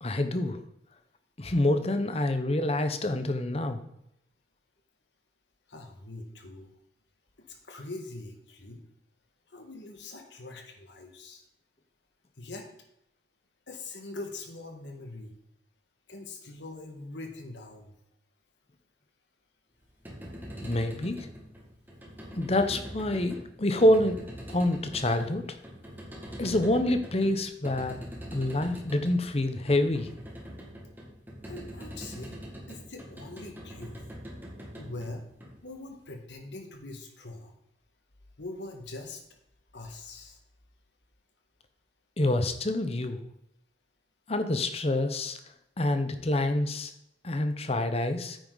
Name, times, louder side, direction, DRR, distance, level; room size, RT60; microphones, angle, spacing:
voice 1, 0.0-0.6 1.4-3.8 20.6-21.3 22.3-24.2 24.5-25.6 26.4-28.1 28.3-30.1 42.2-43.2 44.3-45.4 45.8-46.9 47.2-48.4, left 1 dB, 35° left, 8 dB, 0.9 m, -27 dB
voice 2, 5.7-6.7 7.4-8.8 9.5-11.4 12.4-12.7 13.7-15.4 16.1-18.0 31.5-32.4 32.7-34.0 34.8-35.2 35.6-37.5 38.4-39.4 39.7-40.4, left 2 dB, 80° left, 3 dB, 1.8 m, -42 dB
sound 1, 19.8-36.0, equal, 10° right, 2.0 m, -43 dB
9.8 x 9.1 x 4.0 m, 0.77 s
head